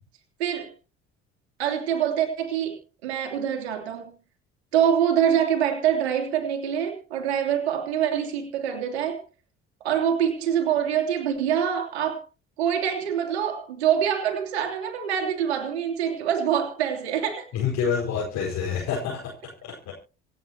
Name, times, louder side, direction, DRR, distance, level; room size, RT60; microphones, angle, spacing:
voice 1, 0.4-0.7 1.6-4.1 4.7-9.2 9.8-12.2 12.6-17.5, right 9 dB, 70° right, 3 dB, 3.1 m, -25 dB
voice 2, 17.5-19.3 19.6-19.9, left 6 dB, 55° left, -3 dB, 4.9 m, -27 dB
27.0 x 9.3 x 2.9 m, 0.33 s
figure-of-eight pair, 50°, 33 cm